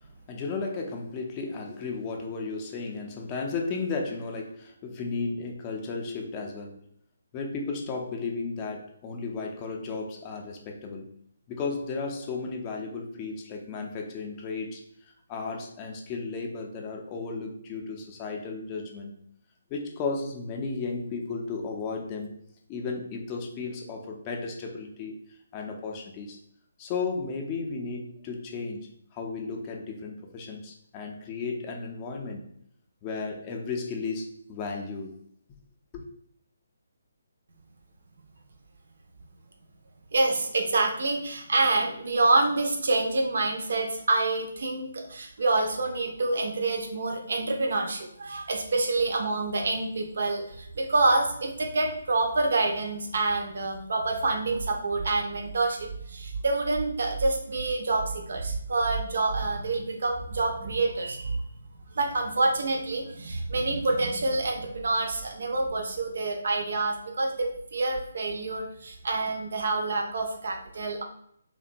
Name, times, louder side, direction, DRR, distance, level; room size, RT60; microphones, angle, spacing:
voice 1, 0.3-6.8 7.3-11.1 11.5-14.8 15.3-19.1 19.7-22.4 22.7-25.1 25.5-26.4 26.8-32.4 33.0-35.2 35.9-36.0, left 4 dB, 25° left, 1 dB, 0.4 m, -34 dB
voice 2, 40.1-61.4 61.9-71.0, right 2 dB, 60° right, 3 dB, 0.4 m, -27 dB
2.7 x 2.1 x 2.5 m, 0.68 s
figure-of-eight pair, 145°, 0 cm